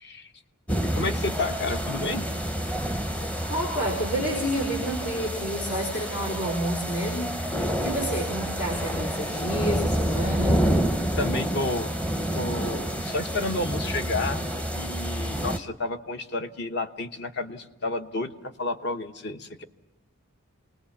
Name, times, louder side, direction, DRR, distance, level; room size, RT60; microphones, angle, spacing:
Santa Clara thunderstorm party, 0.7-15.6, equal, 5° left, 0.7 m, -28 dB
voice 1, 0.9-2.4 11.2-11.9 12.3-19.6, left 2 dB, 50° left, 8 dB, 1.2 m, -31 dB
voice 2, 3.5-10.6, equal, 70° left, 0 dB, 4.4 m, -29 dB
26.5 x 20.0 x 7.1 m, 1.0 s
head